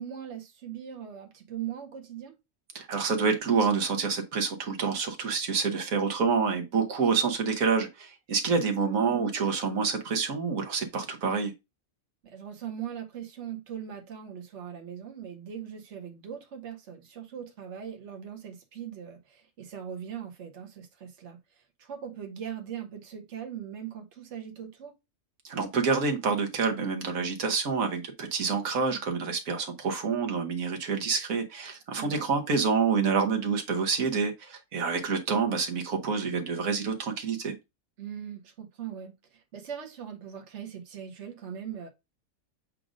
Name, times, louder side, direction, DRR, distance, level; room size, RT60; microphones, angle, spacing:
voice 1, 0.0-2.4 8.6-9.0 12.2-24.9 32.0-32.3 38.0-41.9, right 9 dB, 55° right, 1.4 m, -40 dB
voice 2, 2.7-11.5 25.4-37.5, right 5 dB, 75° right, 1.5 m, -27 dB
7.5 x 2.6 x 5.0 m
omnidirectional pair, 1.4 m